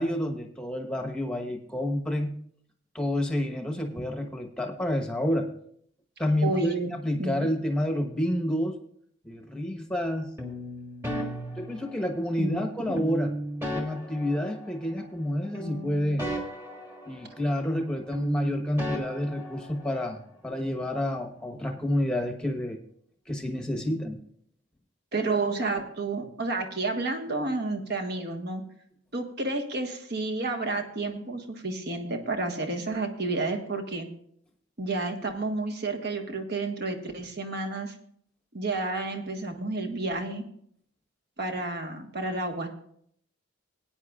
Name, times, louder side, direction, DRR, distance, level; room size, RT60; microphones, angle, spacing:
voice 1, 0.0-2.3 2.9-5.5 6.2-8.8 9.2-10.3 11.6-13.3 13.7-16.3 17.1-22.8 23.3-24.2, left 1 dB, 5° left, 3 dB, 1.1 m, -29 dB
voice 2, 6.4-6.9 7.2-7.4 12.4-13.0 25.1-28.6 29.1-34.1 34.8-37.9 38.5-40.4 41.4-42.7, right 3 dB, 50° right, 4 dB, 1.4 m, -30 dB
sound 1, 10.4-12.4 13.0-15.3 15.5-17.9 18.1-20.2, equal, 10° right, 1.5 m, -36 dB
18.5 x 9.2 x 2.4 m, 0.66 s
head